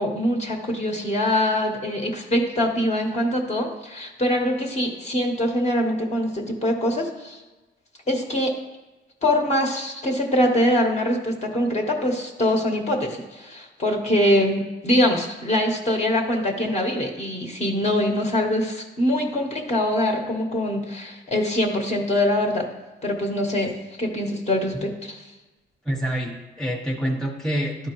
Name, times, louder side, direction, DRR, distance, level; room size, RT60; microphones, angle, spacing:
voice 1, 0.0-7.4 8.1-8.6 9.2-22.7 23.0-25.3, left 1 dB, 35° left, 0 dB, 1.3 m, -23 dB
voice 2, 25.9-27.9, equal, 5° left, -2 dB, 1.2 m, -27 dB
12.0 x 4.4 x 3.1 m, 1.1 s
cardioid pair, 90°, 20 cm